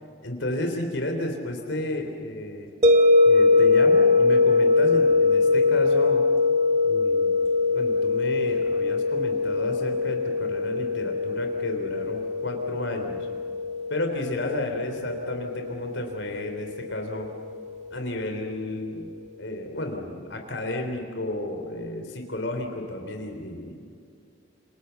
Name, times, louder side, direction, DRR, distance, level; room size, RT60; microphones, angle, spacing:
voice 1, 0.2-2.7 3.3-6.2 6.8-7.3 7.7-13.3 13.9-17.3 17.9-19.1 19.4-23.7, left 1 dB, 70° left, 4 dB, 3.7 m, -32 dB
sound 1, 2.8-17.8, left 3 dB, 35° right, 1.9 m, -22 dB
29.5 x 28.0 x 7.1 m, 2.4 s
head